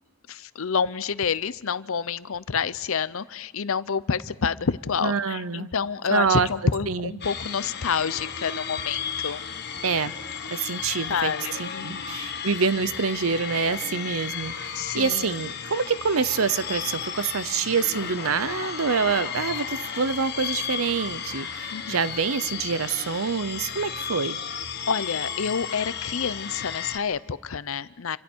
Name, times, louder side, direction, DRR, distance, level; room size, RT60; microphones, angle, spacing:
voice 1, 0.3-9.4 11.1-12.2 14.7-15.3 21.7-22.1 24.9-28.2, left 6 dB, 65° left, 17 dB, 0.6 m, -28 dB
voice 2, 5.0-5.7 6.1-6.5 6.9-7.1 9.8-10.1 10.5-11.3 11.6-24.4, right 5 dB, 70° right, 15 dB, 0.8 m, -26 dB
sound 1, 7.2-27.0, left 7 dB, 50° left, 1.6 m, -34 dB
Laughter, 17.7-21.6, left 5 dB, 90° left, 1.4 m, -42 dB
28.0 x 25.5 x 4.6 m, 1.1 s
head